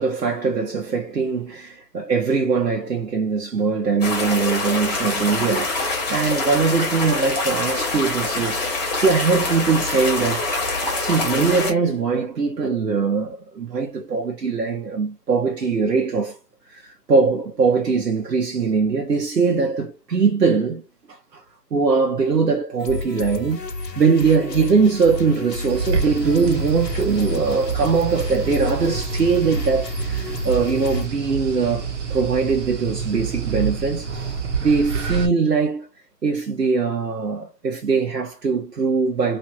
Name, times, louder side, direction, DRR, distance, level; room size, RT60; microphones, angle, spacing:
voice 1, 0.0-10.5 11.0-16.4 16.7-20.8 21.1-21.4 21.7-23.6 24.0-31.8 32.1-35.9 36.2-39.4, right 5 dB, 85° right, 0.9 m, -21 dB
sound 1, 4.0-11.7, left 3 dB, 25° left, 1.2 m, -25 dB
sound 2, 22.8-31.1, left 3 dB, 90° left, 1.0 m, -31 dB
sound 3, 25.7-35.3, right 6 dB, 45° right, 0.8 m, -28 dB
3.1 x 2.4 x 2.9 m
figure-of-eight pair, 150°, 48 cm